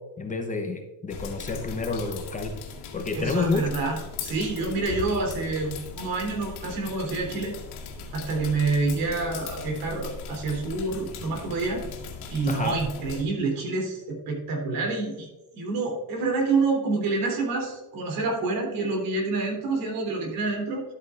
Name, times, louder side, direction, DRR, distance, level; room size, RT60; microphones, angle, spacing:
voice 1, 0.2-2.5 2.9-3.6 12.5-12.8, left 4 dB, 20° left, 4 dB, 0.8 m, -29 dB
sound 1, 1.1-13.2, left 5 dB, 80° left, 2.0 m, -38 dB
voice 2, 3.1-7.5 8.1-11.8 12.3-15.3 15.5-20.8, right 3 dB, 65° right, 0 dB, 3.3 m, -27 dB
12.0 x 8.5 x 2.5 m, 1.1 s
cardioid pair, 155°, 37 cm